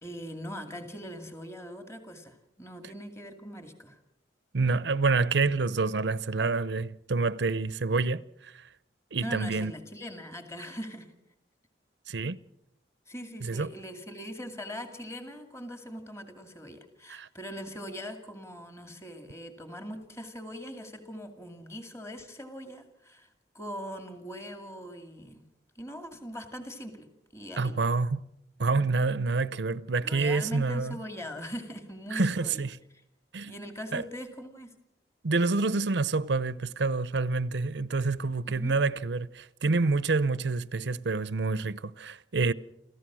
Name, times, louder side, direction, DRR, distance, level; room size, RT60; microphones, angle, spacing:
voice 1, 0.0-4.0 9.2-11.1 13.1-23.3 23.5-25.4 25.8-27.1 27.3-27.8 28.7-28.9 30.0-32.6 32.9-33.0 33.4-34.7 38.4-38.8, equal, 15° left, 2.3 m, -41 dB
voice 2, 4.5-8.6 9.1-9.7 12.1-12.4 13.4-13.7 17.1-17.3 27.6-28.2 28.6-31.0 32.1-32.8 33.3-33.5 33.9-34.0 35.2-42.5, right 3 dB, 70° right, 0.7 m, -27 dB
28.5 x 15.0 x 6.2 m
head